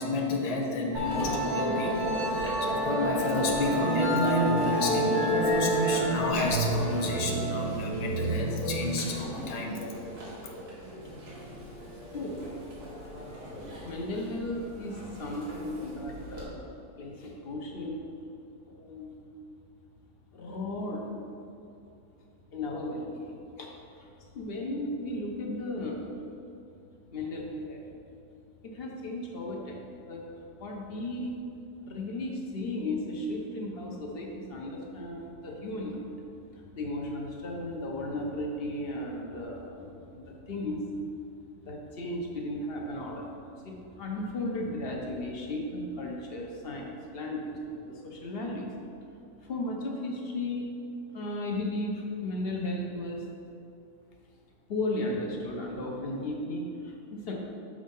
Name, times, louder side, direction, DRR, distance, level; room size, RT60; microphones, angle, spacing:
voice 1, 0.0-9.8, left 2 dB, 75° left, 1 dB, 0.3 m, -31 dB
Musical instrument, 0.9-16.4, right 1 dB, 85° right, 2.0 m, -30 dB
voice 2, 13.8-16.7 17.0-18.0 18.7-19.2 20.3-21.1 22.5-23.7 24.3-26.1 27.1-27.9 28.6-30.2 30.6-31.3 31.8-36.1 36.5-40.8 41.6-48.7 49.4-50.6 51.1-53.2 54.7-57.3, left 1 dB, 45° left, -1 dB, 1.0 m, -35 dB
6.5 x 4.2 x 5.3 m, 2.6 s
omnidirectional pair, 1.6 m